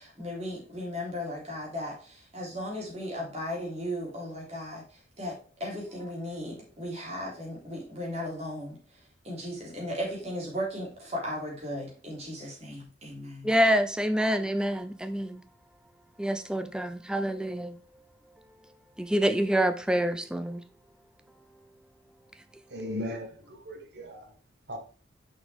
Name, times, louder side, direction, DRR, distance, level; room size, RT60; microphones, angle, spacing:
voice 1, 0.0-4.8 5.2-8.8 9.2-13.5, equal, 35° right, 3.3 m, -36 dB
voice 2, 13.4-15.4 16.2-17.8 19.0-20.6, equal, 5° right, 0.4 m, -26 dB
voice 3, 22.7-24.2 24.7-24.8, left 1 dB, 60° right, 1.4 m, -37 dB
6.1 x 6.1 x 3.4 m
head